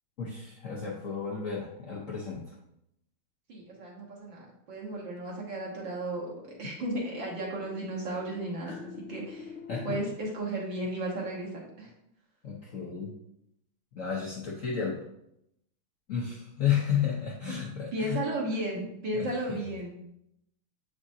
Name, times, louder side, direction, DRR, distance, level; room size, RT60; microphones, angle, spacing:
voice 1, 0.2-2.5 8.7-8.8 9.7-10.0 12.4-13.1 13.9-15.0 16.1-18.2 19.2-19.7, left 8 dB, 60° left, -3 dB, 0.9 m, -32 dB
voice 2, 3.5-9.6 9.8-11.9 17.9-20.0, right 1 dB, 65° right, -2 dB, 2.1 m, -34 dB
sound 1, 5.3-10.0, left 6 dB, 80° left, 1.5 m, -47 dB
7.4 x 4.9 x 2.7 m, 0.79 s
omnidirectional pair, 2.3 m